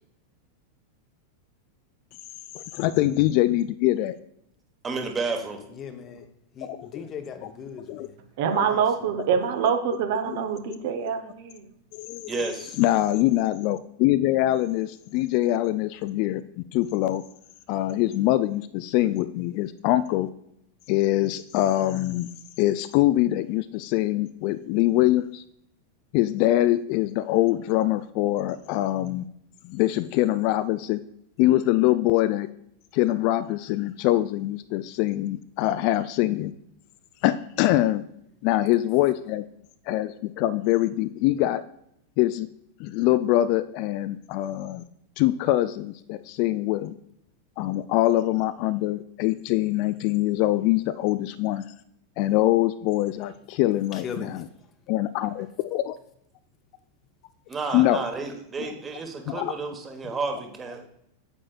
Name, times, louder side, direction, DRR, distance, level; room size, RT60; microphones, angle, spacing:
voice 1, 2.5-4.2 6.6-7.0 7.4-7.5 7.9-8.1 8.5-8.7 9.4-9.5 10.2-10.4 11.0-11.1 11.9-12.3 12.8-17.2 17.7-20.3 20.9-22.3 22.6-25.4 26.1-29.3 29.6-31.0 31.4-32.5 32.9-36.5 37.2-38.0 38.4-39.4 39.9-41.6 42.2-42.5 42.8-44.8 45.2-46.9 47.6-51.6 52.2-54.5 54.9-55.9 57.7-58.0 58.6-58.7 59.3-59.5, left 15 dB, 45° left, 13 dB, 0.3 m, -24 dB
voice 2, 4.8-5.6 12.3-12.8 57.5-60.9, right 3 dB, 20° right, 4 dB, 1.3 m, -31 dB
voice 3, 5.7-6.2 6.5-8.1 8.6-8.8 53.9-54.4, left 6 dB, 30° left, 8 dB, 0.9 m, -38 dB
voice 4, 8.4-11.6, right 7 dB, 50° right, 7 dB, 0.9 m, -25 dB
8.7 x 7.4 x 2.4 m, 0.73 s
figure-of-eight pair, 90°, 0 cm